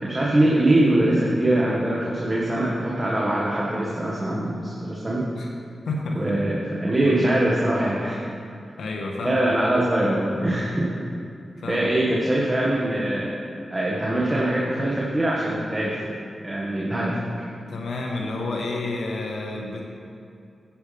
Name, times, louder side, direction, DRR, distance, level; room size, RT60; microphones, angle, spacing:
voice 1, 0.0-5.3 6.1-8.2 9.2-11.0 11.7-13.3 13.7-16.0 16.4-17.2, right 1 dB, 25° right, -5 dB, 1.9 m, -22 dB
voice 2, 5.8-6.2 8.8-9.7 11.6-11.9 17.7-19.8, left 2 dB, 80° left, 0 dB, 1.4 m, -30 dB
10.5 x 9.4 x 3.6 m, 2.5 s
supercardioid pair, 40°, 0 cm